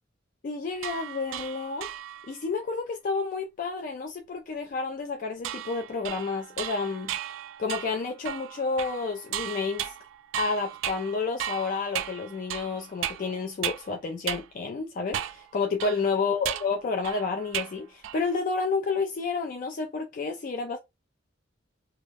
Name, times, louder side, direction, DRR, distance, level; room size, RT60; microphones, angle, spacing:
voice 1, 0.4-1.9 2.3-7.2 7.6-9.9 10.4-20.8, left 4 dB, 45° left, 0.3 m, -30 dB
sound 1, 0.8-2.4 5.4-13.9 14.3-14.5 15.1-15.5 15.8-17.8 18.0-18.4, right 11 dB, 85° right, 0.3 m, -36 dB
2.3 x 2.1 x 3.2 m
head